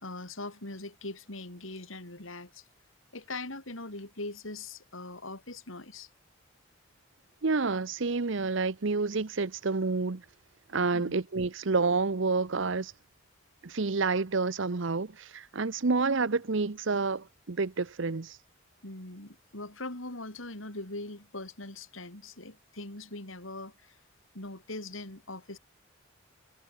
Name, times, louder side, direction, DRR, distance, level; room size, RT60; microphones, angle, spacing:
voice 1, 0.0-2.6 3.1-6.1 10.9-11.2 18.8-23.9 24.3-25.6, left 2 dB, 75° left, 4.6 m, -41 dB
voice 2, 7.4-10.2 10.7-12.9 13.6-18.4, right 4 dB, 65° right, 0.8 m, -29 dB
head